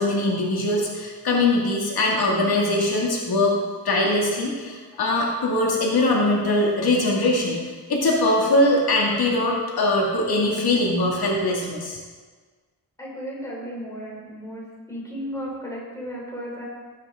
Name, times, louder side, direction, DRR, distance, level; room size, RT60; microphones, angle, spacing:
voice 1, 0.0-3.6 3.8-7.6 7.9-12.0, left 2 dB, 75° left, -2 dB, 2.3 m, -21 dB
voice 2, 13.0-14.6 14.9-16.6, equal, 10° left, -4 dB, 3.7 m, -34 dB
17.0 x 8.9 x 3.7 m, 1.5 s
wide cardioid pair, 145°, 37 cm